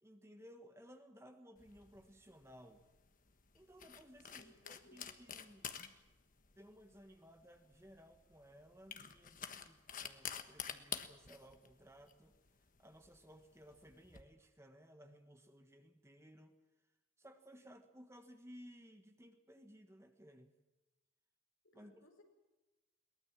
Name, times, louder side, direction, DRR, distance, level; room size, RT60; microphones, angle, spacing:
voice 1, 0.0-2.8 3.5-5.7 6.5-12.3 12.8-16.5 17.2-20.5 21.7-22.0, equal, 15° right, 7 dB, 1.4 m, -59 dB
sound 1, 1.6-14.2, left 8 dB, 40° left, 1.3 m, -50 dB
voice 2, 4.4-5.1 21.6-22.2, left 1 dB, 70° left, 4 dB, 4.8 m, -65 dB
22.5 x 19.0 x 7.5 m, 1.1 s
head